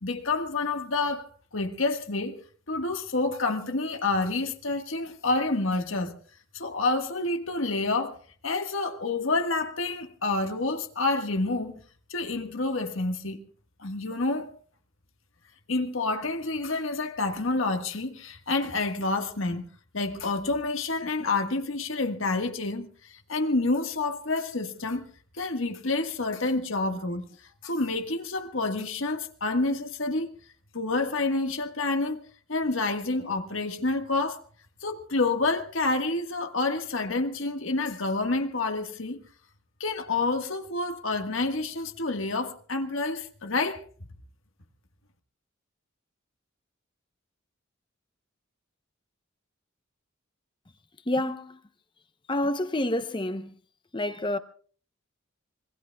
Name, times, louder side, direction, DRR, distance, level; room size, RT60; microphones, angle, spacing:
voice 1, 0.0-2.4 2.7-6.1 6.5-11.8 12.1-13.4 13.8-14.5 15.7-19.6 19.9-25.0 25.4-27.3 27.6-30.3 30.7-32.2 32.5-34.4 34.8-39.2 39.8-43.8, left 3 dB, 80° left, 1.6 m, -28 dB
voice 2, 51.1-51.6 52.3-53.6 53.9-54.4, left 1 dB, 25° left, 0.8 m, -28 dB
25.5 x 22.0 x 2.3 m
head